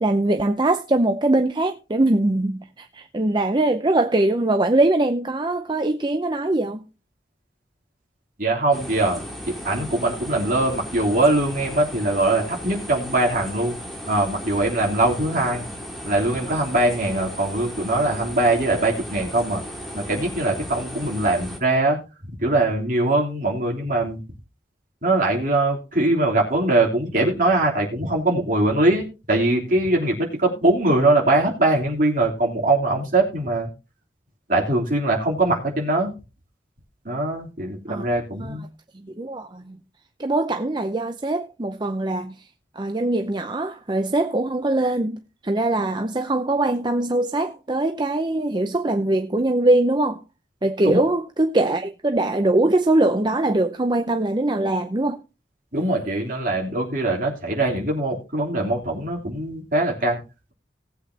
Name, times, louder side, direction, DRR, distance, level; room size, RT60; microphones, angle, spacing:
voice 1, 0.0-6.8 37.9-38.0 38.4-38.6 38.9-39.8 40.2-42.5 42.7-50.2 50.6-55.2, right 2 dB, 25° right, 0.6 m, -22 dB
voice 2, 8.4-13.8 14.1-15.7 16.0-19.6 19.9-22.0 22.3-24.2 25.0-33.7 34.5-36.1 37.0-38.7 50.8-51.0 55.7-60.2, right 2 dB, 50° right, 3.3 m, -22 dB
sound 1, 8.7-21.6, equal, ahead, 2.1 m, -36 dB
18.5 x 8.1 x 2.8 m
head